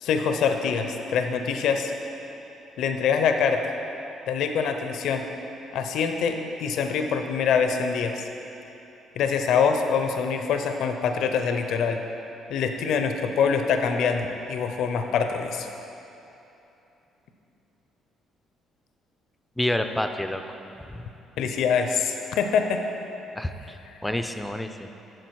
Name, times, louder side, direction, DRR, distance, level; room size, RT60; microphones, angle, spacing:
voice 1, 0.0-1.9 2.8-3.6 4.3-5.2 5.7-8.3 9.2-12.0 12.5-15.7 21.4-22.8, left 6 dB, 75° left, 5 dB, 0.5 m, -24 dB
voice 2, 19.6-20.4 20.9-21.1 23.4-24.9, left 1 dB, 5° left, 7 dB, 0.4 m, -29 dB
9.2 x 6.3 x 4.6 m, 3.0 s
cardioid pair, 115°, 0 cm